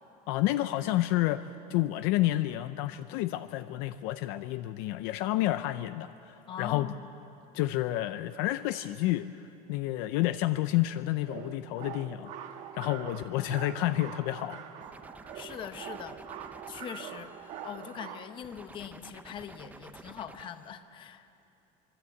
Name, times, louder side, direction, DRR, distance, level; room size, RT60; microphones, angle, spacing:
voice 1, 0.3-6.9 7.5-14.6, left 15 dB, 60° left, 12 dB, 0.6 m, -30 dB
voice 2, 6.5-7.0 15.3-16.2 16.7-21.3, left 8 dB, 30° left, 10 dB, 1.0 m, -42 dB
sound 1, 11.3-18.3, right 9 dB, 40° right, 1.3 m, -44 dB
sound 2, 14.8-18.0 18.4-20.7, right 3 dB, 10° right, 0.6 m, -51 dB
25.0 x 22.5 x 8.4 m, 2.9 s
cardioid pair, 180°, 18 cm